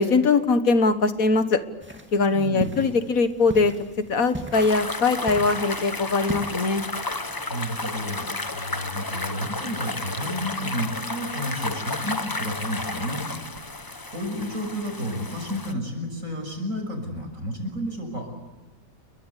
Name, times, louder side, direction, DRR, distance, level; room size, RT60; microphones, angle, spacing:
voice 1, 0.0-1.6 2.1-3.7 4.1-6.9, left 3 dB, 75° left, 10 dB, 1.9 m, -21 dB
sound 1, 1.8-6.8, equal, 10° right, 2.2 m, -38 dB
voice 2, 2.3-2.8 7.5-13.6 14.1-18.3, equal, 65° right, 4 dB, 6.9 m, -31 dB
sound 2, 4.5-15.7, left 2 dB, 15° left, 0.9 m, -32 dB
29.0 x 23.0 x 8.4 m, 1.1 s
omnidirectional pair, 1.5 m